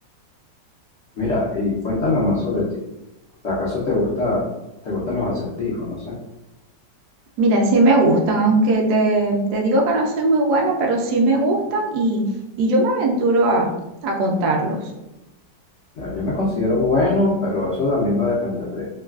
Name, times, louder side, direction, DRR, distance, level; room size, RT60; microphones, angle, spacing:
voice 1, 1.2-2.6 3.4-4.4 4.8-6.1 16.0-18.9, left 2 dB, 80° left, -6 dB, 0.6 m, -22 dB
voice 2, 7.4-12.2 12.6-13.7 14.0-14.8, right 2 dB, 70° right, -1 dB, 1.0 m, -18 dB
3.1 x 2.2 x 2.3 m, 0.94 s
omnidirectional pair, 2.0 m